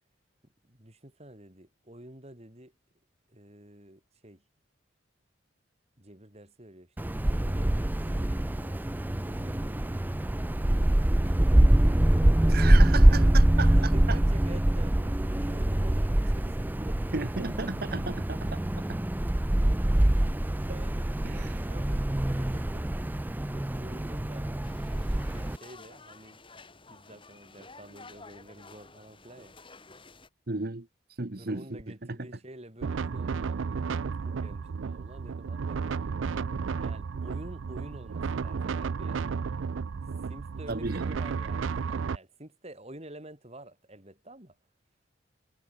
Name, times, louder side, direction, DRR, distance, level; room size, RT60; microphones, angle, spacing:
voice 1, 0.7-2.7 3.3-4.4 6.0-6.9 7.3-11.5 12.4-17.1 17.4-17.5 20.6-21.1 21.3-22.0 22.3-23.2 23.5-26.4 26.9-29.6 31.4-36.0 36.8-39.3 40.3-44.6, right 1 dB, 35° right, 4.4 m, -49 dB
Wind, 7.0-25.6, right 1 dB, 10° right, 0.4 m, -24 dB
voice 2, 12.5-14.2 17.1-18.6 18.9-19.0 20.7-20.8 21.2-21.6 30.5-30.9 31.2-31.8 32.2-32.3 40.7-41.2, right 3 dB, 50° right, 1.2 m, -34 dB
sound 1, 24.6-30.3, left 3 dB, 25° left, 6.2 m, -51 dB
sound 2, 32.8-42.2, right 5 dB, 85° right, 0.5 m, -33 dB
head